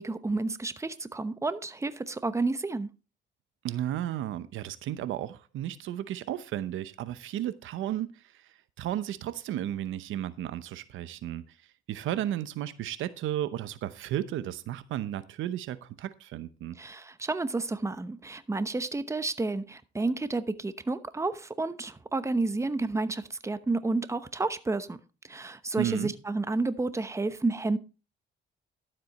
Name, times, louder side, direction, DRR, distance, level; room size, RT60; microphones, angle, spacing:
voice 1, 0.0-2.9 16.8-25.0 25.2-27.8, right 3 dB, 15° right, 0.9 m, -30 dB
voice 2, 3.6-11.5 11.9-16.8 25.8-26.1, right 12 dB, 80° right, 0.8 m, -34 dB
12.0 x 7.7 x 4.2 m
cardioid pair, 90°, 20 cm